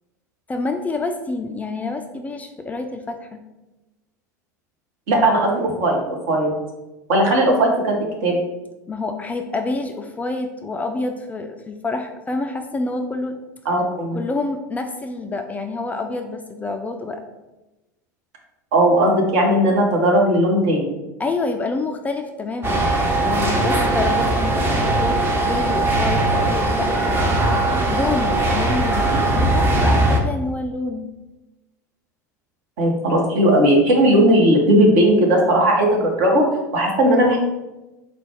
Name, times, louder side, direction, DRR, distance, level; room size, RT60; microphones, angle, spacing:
voice 1, 0.5-3.4 8.9-13.4 14.2-17.2 21.2-22.8 23.2-25.2 25.4-27.4 27.9-31.1, left 3 dB, 15° left, 4 dB, 0.3 m, -27 dB
voice 2, 5.1-6.0 6.3-6.5 7.1-8.4 13.6-14.2 18.7-20.9 32.8-36.4 36.7-37.4, right 1 dB, 55° right, 0 dB, 1.1 m, -17 dB
sound 1, 22.6-30.2, right 2 dB, 20° right, 0.7 m, -19 dB
4.3 x 2.2 x 4.5 m, 1.0 s
figure-of-eight pair, 75°, 10 cm